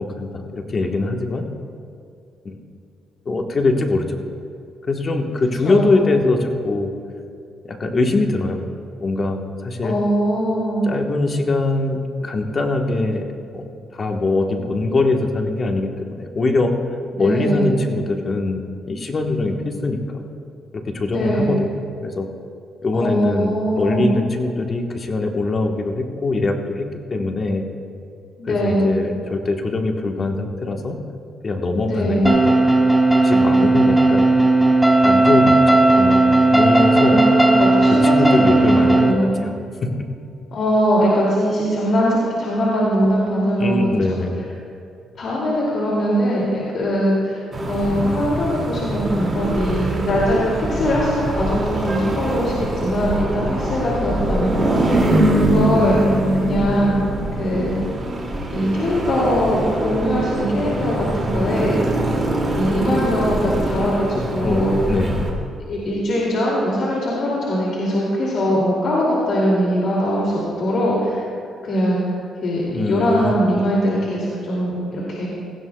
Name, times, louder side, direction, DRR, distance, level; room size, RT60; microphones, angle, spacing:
voice 1, 0.0-1.4 2.4-2.5 3.2-4.2 4.9-6.9 7.6-8.6 9.0-10.0 10.8-16.7 17.1-20.2 20.7-21.6 22.0-22.3 22.8-27.7 28.4-31.0 31.4-32.6 33.2-34.3 35.0-36.2 36.5-37.2 38.0-39.1 39.4-39.5 43.6-44.3 64.1-64.6 64.9-65.2 72.7-73.6, left 2 dB, 40° left, 3 dB, 1.3 m, -22 dB
voice 2, 5.6-6.0 9.8-10.9 17.2-17.7 21.1-21.6 22.9-24.1 28.4-28.9 31.8-32.4 36.8-38.4 38.7-39.3 40.5-43.8 45.1-55.0 55.3-57.0 57.4-57.8 58.5-61.9 62.5-64.8 65.7-71.3 71.6-72.0 72.4-75.3, equal, 60° left, -5 dB, 2.6 m, -21 dB
sound 1, 32.2-39.1, right 2 dB, ahead, 1.2 m, -15 dB
jalan cikini edit, 47.5-65.3, right 1 dB, 30° right, 2.5 m, -23 dB
17.5 x 15.5 x 2.3 m, 2.4 s
cardioid pair, 90°, 0 cm